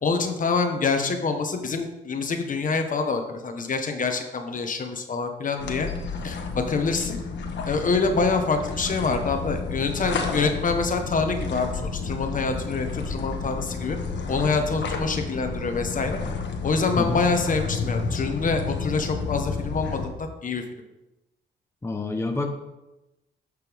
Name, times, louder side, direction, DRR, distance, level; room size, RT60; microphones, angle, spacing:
voice 1, 0.0-5.9 6.2-7.2 7.7-14.0 14.3-16.2 16.6-20.6, left 4 dB, 40° left, 5 dB, 1.3 m, -26 dB
sound 1, 5.6-20.1, left 4 dB, 65° left, 1.5 m, -31 dB
voice 2, 21.8-22.6, left 2 dB, 15° left, 3 dB, 1.0 m, -27 dB
11.0 x 6.7 x 3.6 m, 0.98 s
cardioid pair, 90°, 20 cm